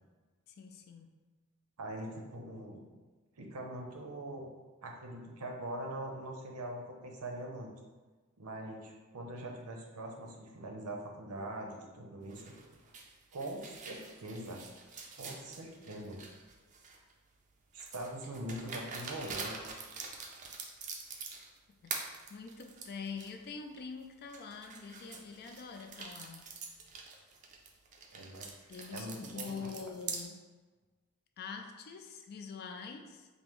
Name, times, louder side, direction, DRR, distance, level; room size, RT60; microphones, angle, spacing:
voice 1, 0.5-1.1 21.8-26.5 28.7-30.4 31.4-33.3, left 5 dB, 45° left, 5 dB, 0.3 m, -45 dB
voice 2, 1.8-2.8 3.4-4.5 4.8-7.7 8.4-12.5 13.3-14.6 15.1-16.2 17.7-19.6 28.1-29.9, right 1 dB, 85° right, 1 dB, 0.7 m, -43 dB
sound 1, 12.3-17.1 17.8-21.6 21.9-23.3 23.8-23.9 24.3-30.2, right 4 dB, 35° right, 0.4 m, -45 dB
5.3 x 2.0 x 3.0 m, 1.3 s
head